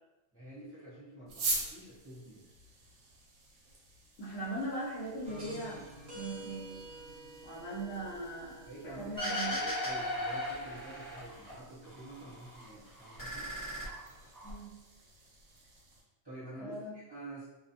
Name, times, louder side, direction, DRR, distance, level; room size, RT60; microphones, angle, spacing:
voice 1, 0.3-2.4 8.7-13.5 16.2-17.5, right 1 dB, 20° right, -12 dB, 0.8 m, -48 dB
sound 1, 1.3-16.0, right 3 dB, 80° right, 1.0 m, -45 dB
voice 2, 4.2-5.8 6.1-6.8 7.4-8.6 9.0-9.5 14.4-14.7 16.6-16.9, right 1 dB, 65° left, -5 dB, 0.9 m, -39 dB
sound 2, 5.2-11.5, right 1 dB, 50° right, 0.7 m, -50 dB
Mike Snue, 9.2-11.5 11.8-12.7 13.0-14.5, left 1 dB, 25° left, 0.4 m, -37 dB
2.5 x 2.1 x 2.7 m, 1.1 s
omnidirectional pair, 1.3 m